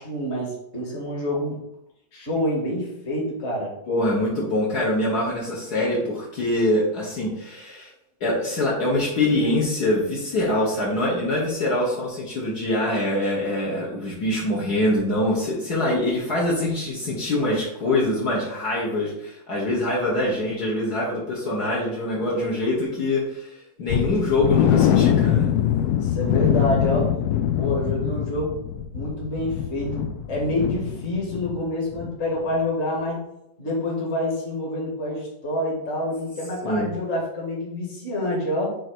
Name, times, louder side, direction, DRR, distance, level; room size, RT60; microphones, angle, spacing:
voice 1, 0.0-1.6 2.1-3.7 26.0-27.1 27.5-28.6 28.9-33.2 33.6-38.8, left 1 dB, 35° left, -3 dB, 1.9 m, -27 dB
voice 2, 3.9-7.9 8.2-25.5 36.6-36.9, left 1 dB, 55° left, -6 dB, 1.8 m, -24 dB
sound 1, 23.9-31.7 31.9-32.1 32.5-32.6, left 10 dB, 80° left, 0.9 m, -23 dB
7.6 x 3.1 x 4.5 m, 0.82 s
omnidirectional pair, 2.1 m